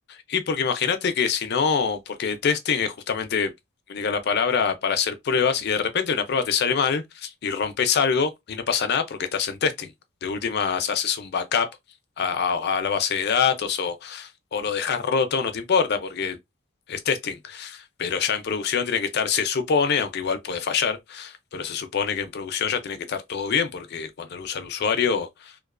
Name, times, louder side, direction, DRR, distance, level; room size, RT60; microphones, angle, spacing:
voice 1, 0.3-3.5 3.9-9.9 10.2-11.7 12.2-16.4 16.9-25.5, left 6 dB, 50° left, 0.4 m, -25 dB
2.3 x 2.2 x 2.4 m
head